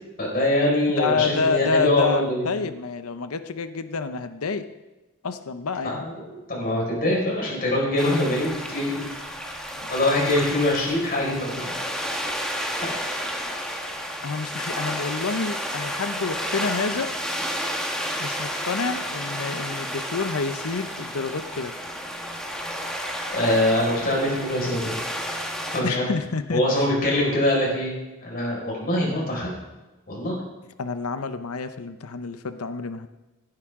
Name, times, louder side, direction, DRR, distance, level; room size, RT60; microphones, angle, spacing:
voice 1, 0.2-2.5 6.0-6.2 6.5-9.0 9.9-11.7 12.8-12.9 23.3-25.0 25.7-26.0 26.5-27.9 28.2-29.5 30.1-30.4, left 1 dB, 45° left, -3 dB, 5.2 m, -23 dB
voice 2, 0.9-4.7 5.2-6.0 9.7-9.9 14.2-17.1 18.2-21.7 25.8-26.6 30.8-33.1, left 4 dB, 85° left, 10 dB, 0.7 m, -28 dB
sound 1, 8.0-25.8, equal, 5° left, 1.5 m, -31 dB
17.0 x 11.0 x 3.7 m, 1.1 s
head